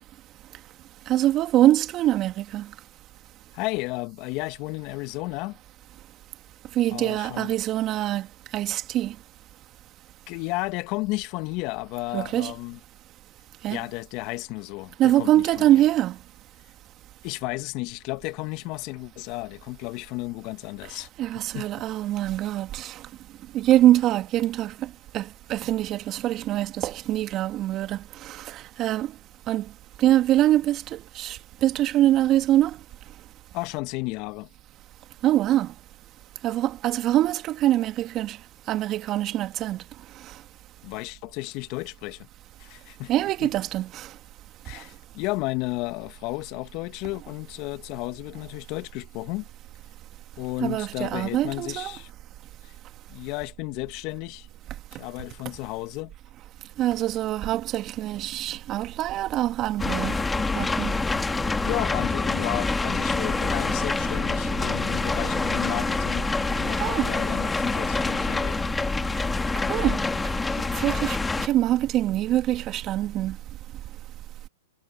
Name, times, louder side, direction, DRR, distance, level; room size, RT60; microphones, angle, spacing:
voice 1, 1.1-2.7 6.8-8.3 8.5-9.1 12.1-12.5 13.6-13.8 15.0-16.2 21.2-23.0 23.5-29.1 29.5-29.7 30.0-32.8 35.2-35.7 36.4-38.4 38.7-39.8 43.1-44.1 50.6-52.0 56.8-60.2 60.6-61.0 66.8-67.1 69.7-70.0 70.7-73.4, right 13 dB, 35° right, 2.5 m, -24 dB
voice 2, 3.5-5.6 6.9-7.5 10.3-12.8 13.7-15.3 15.6-15.7 17.2-21.1 21.5-21.7 33.5-34.5 40.8-42.3 42.6-43.1 43.4-43.5 44.6-49.5 50.4-52.1 52.6-52.7 53.1-54.5 54.9-56.1 61.6-66.3 66.5-68.6 69.6-69.7, left 23 dB, 45° left, 2.1 m, -33 dB
sound 1, 59.8-71.5, left 3 dB, 10° left, 2.3 m, -26 dB
hypercardioid pair, 120°, 0 cm